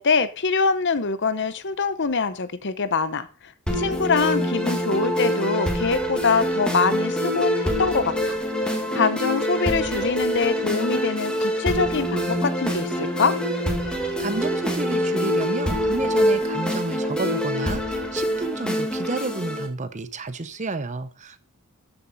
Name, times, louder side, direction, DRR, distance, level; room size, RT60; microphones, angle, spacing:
voice 1, 0.0-3.3 3.7-8.4 8.7-13.4, left 4 dB, 50° left, 14 dB, 0.8 m, -24 dB
sound 1, 3.7-19.7, equal, 5° left, 2.0 m, -25 dB
voice 2, 14.2-21.4, right 3 dB, 35° right, 13 dB, 0.8 m, -31 dB
13.5 x 7.4 x 4.0 m, 0.35 s
head